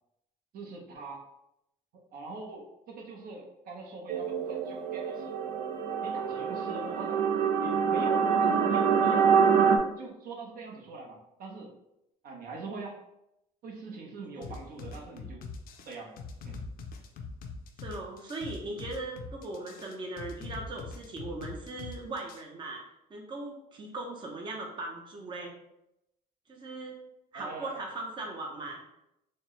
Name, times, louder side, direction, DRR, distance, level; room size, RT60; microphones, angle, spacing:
voice 1, 0.5-1.2 2.1-5.3 6.0-7.2 7.6-9.4 10.0-11.7 12.2-13.0 13.6-15.4 15.9-16.2 16.4-16.6 27.3-27.8, right 3 dB, 60° right, 0 dB, 0.8 m, -43 dB
sound 1, 4.1-9.8, right 6 dB, 85° right, 0.4 m, -26 dB
sound 2, 14.4-22.4, left 4 dB, 60° left, 0.5 m, -42 dB
voice 2, 17.8-22.8 23.1-25.5 26.5-27.0 27.3-28.8, right 2 dB, 30° right, -1 dB, 0.6 m, -39 dB
4.1 x 2.0 x 3.1 m, 0.86 s
cardioid pair, 110°, 17 cm